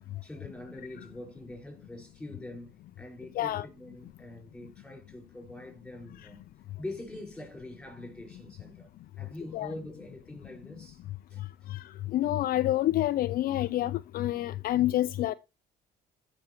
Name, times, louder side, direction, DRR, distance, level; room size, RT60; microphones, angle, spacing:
voice 1, 0.2-6.4 6.8-8.9 9.2-11.0 11.3-11.7 14.5-14.6, left 1 dB, 5° left, 5.1 m, -44 dB
voice 2, 3.3-3.7 9.5-9.7 11.7-15.3, left 14 dB, 60° left, 0.4 m, -28 dB
16.0 x 6.0 x 3.0 m
cardioid pair, 110°, 17 cm